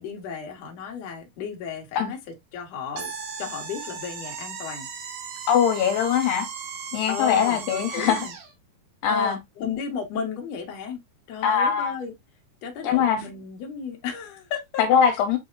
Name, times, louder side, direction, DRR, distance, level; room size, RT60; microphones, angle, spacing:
voice 1, 0.0-2.2 2.5-3.1 3.4-4.9 7.1-8.4 9.1-11.0 11.3-12.1 12.6-14.8, left 6 dB, 60° left, 1.9 m, -33 dB
sound 1, 3.0-8.5, right 6 dB, 75° right, 2.8 m, -36 dB
voice 2, 5.5-6.5 6.9-8.3 9.0-9.4 11.4-11.9 12.8-13.2 14.8-15.4, left 8 dB, 80° left, 2.7 m, -21 dB
7.4 x 2.7 x 2.3 m
omnidirectional pair, 4.2 m